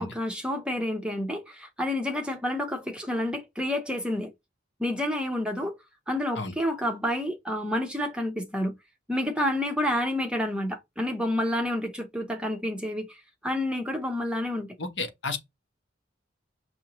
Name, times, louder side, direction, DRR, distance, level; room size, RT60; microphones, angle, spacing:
voice 1, 0.0-4.3 4.8-5.8 6.1-8.7 9.1-13.2 13.4-14.7, left 1 dB, 5° right, 0.7 m, -29 dB
voice 2, 14.8-15.4, left 3 dB, 60° left, 1.0 m, -32 dB
6.2 x 2.7 x 2.9 m
head